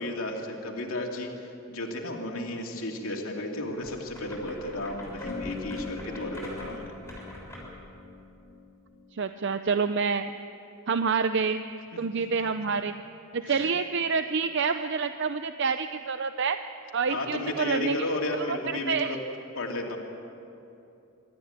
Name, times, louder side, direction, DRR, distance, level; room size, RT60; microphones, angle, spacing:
voice 1, 0.0-6.8 13.4-13.7 17.1-19.2 19.6-20.0, left 1 dB, 70° left, 0 dB, 2.7 m, -33 dB
sound 1, 3.7-7.8, equal, 10° left, 6.7 m, -44 dB
sound 2, 5.1-10.0, left 4 dB, 45° left, 2.2 m, -42 dB
voice 2, 9.1-10.3 10.9-11.6 12.0-13.0 13.3-16.6 16.9-18.0 18.5-19.2, right 5 dB, 55° right, 9 dB, 0.6 m, -27 dB
26.0 x 13.5 x 9.0 m, 2.8 s
head